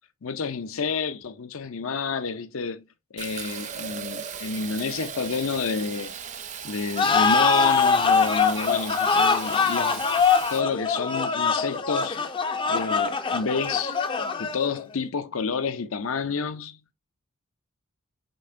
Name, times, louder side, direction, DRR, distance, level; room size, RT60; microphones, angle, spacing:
voice 1, 0.2-2.8 3.1-6.1 6.6-10.2 10.5-12.2 12.6-14.0 14.4-16.8, left 5 dB, 70° left, 0.6 m, -29 dB
Fill (with liquid), 3.2-10.6, right 7 dB, 35° right, 0.5 m, -37 dB
sound 1, 7.0-14.8, left 5 dB, 25° left, 0.4 m, -23 dB
5.4 x 3.3 x 2.6 m
head